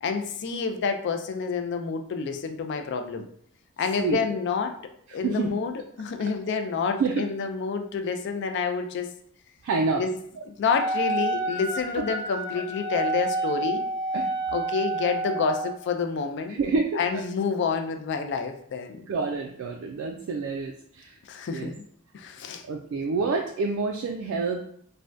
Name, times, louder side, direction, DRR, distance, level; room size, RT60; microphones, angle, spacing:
voice 1, 0.0-3.3 3.8-4.8 5.1-9.1 9.9-10.1 10.5-13.8 14.5-16.6 16.9-19.1 21.3-21.8 22.1-22.6, left 5 dB, 55° left, 6 dB, 0.4 m, -28 dB
voice 2, 5.1-5.5 7.0-7.2 9.6-10.0 14.1-14.3 16.5-17.0 19.1-21.2 21.5-21.7 22.7-24.6, right 4 dB, 75° right, 1 dB, 0.3 m, -28 dB
Wind instrument woodwind instrument, 10.7-15.8, right 2 dB, 20° right, 0.5 m, -29 dB
3.3 x 2.1 x 2.5 m, 0.64 s
head